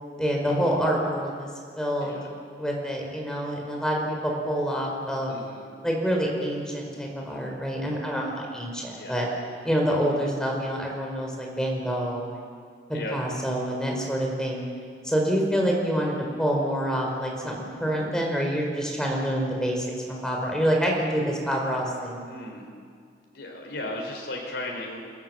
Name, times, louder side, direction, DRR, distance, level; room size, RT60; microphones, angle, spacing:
voice 1, 0.2-1.5 1.8-2.1 2.6-5.3 5.8-9.2 9.6-12.4 13.1-14.6 15.0-22.2, equal, 5° left, -1 dB, 4.8 m, -27 dB
voice 2, 5.3-5.7 8.9-9.2 12.9-13.2 22.2-22.7 23.3-25.0, left 1 dB, 65° left, 0 dB, 4.4 m, -36 dB
27.5 x 17.5 x 7.8 m, 2.2 s
head